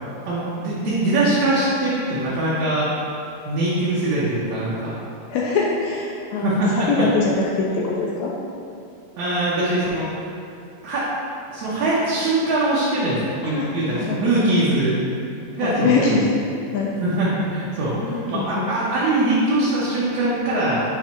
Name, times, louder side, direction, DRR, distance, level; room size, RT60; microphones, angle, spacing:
voice 1, 0.3-2.9 3.4-4.9 6.4-7.1 9.2-10.2 10.8-11.1 11.5-15.0 15.6-16.3 17.0-20.8, right 2 dB, 65° right, -9 dB, 1.8 m, -22 dB
voice 2, 5.3-8.3 13.4-14.6 15.5-16.4 16.7-16.9 18.0-18.7, left 4 dB, 90° left, -3 dB, 1.6 m, -23 dB
7.3 x 3.1 x 4.4 m, 2.5 s
omnidirectional pair, 3.7 m